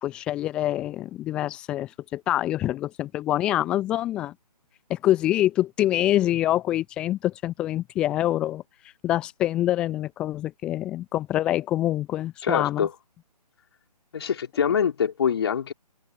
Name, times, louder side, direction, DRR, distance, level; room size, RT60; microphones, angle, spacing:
voice 1, 0.0-4.3 4.9-8.6 9.0-12.9, left 13 dB, 5° left, 0.5 m, -25 dB
voice 2, 12.4-12.9 14.1-15.7, left 7 dB, 35° left, 3.7 m, -24 dB
open air
figure-of-eight pair, 145°, 21 cm